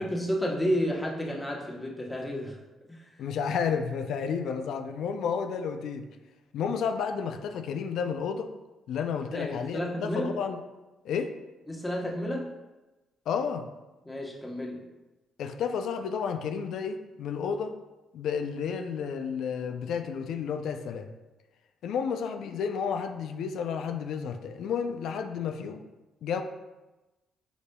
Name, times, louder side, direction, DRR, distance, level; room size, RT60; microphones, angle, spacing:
voice 1, 0.0-2.6 2.9-3.1 9.3-10.3 11.7-12.5 14.1-14.8, equal, 15° left, -2 dB, 0.9 m, -31 dB
voice 2, 3.2-6.1 6.5-8.5 8.9-10.6 11.0-11.3 13.3-13.7 15.4-17.8 18.1-21.1 21.8-25.8 26.2-26.4, left 6 dB, 75° left, 7 dB, 0.3 m, -31 dB
4.9 x 4.0 x 2.2 m, 1.1 s
cardioid pair, 90°, 0 cm